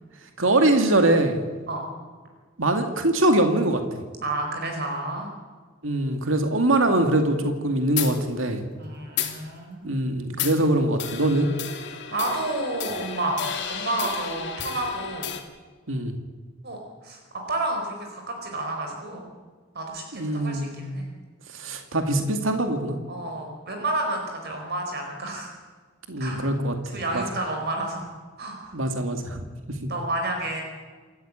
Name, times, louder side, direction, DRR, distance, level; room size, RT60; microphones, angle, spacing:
voice 1, 0.4-1.4 2.6-3.8 5.8-8.6 9.8-11.5 15.9-16.1 20.1-20.9 21.5-23.0 26.1-27.2 28.7-29.4 29.8-29.9, right 1 dB, 75° right, 5 dB, 2.3 m, -23 dB
voice 2, 4.2-5.3 8.8-9.9 12.1-13.4 13.7-15.3 16.6-16.8 17.0-17.2 17.5-19.3 19.7-21.1 23.1-25.5 26.2-26.4 26.9-28.1 28.4-28.7 29.9-30.6, right 2 dB, 55° right, 2 dB, 4.7 m, -30 dB
sound 1, 8.0-8.2 9.2-9.4 10.4-10.6 11.0-15.4, left 8 dB, 60° left, 2.9 m, -32 dB
27.5 x 14.0 x 8.9 m, 1.5 s
head